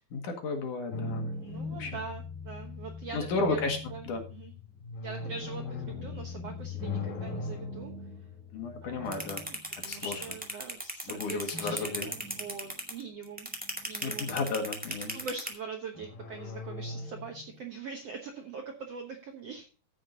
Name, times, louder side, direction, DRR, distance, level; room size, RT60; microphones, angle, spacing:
voice 1, 0.1-1.3 1.8-2.0 3.1-4.2 8.5-9.4 9.8-10.2 11.1-12.1 14.0-15.2, left 3 dB, 60° left, 4 dB, 2.9 m, -33 dB
sound 1, 0.9-10.3 11.5-13.1 13.5-14.6 16.0-17.6, left 3 dB, 85° left, 4.4 m, -40 dB
voice 2, 1.4-3.6 3.9-4.5 5.0-7.9 8.8-13.5 13.8-14.3 15.0-19.7, right 5 dB, 65° right, 3 dB, 1.6 m, -43 dB
sound 2, 9.1-15.5, equal, 10° right, 0.4 m, -35 dB
15.0 x 6.6 x 3.9 m, 0.35 s
omnidirectional pair, 4.5 m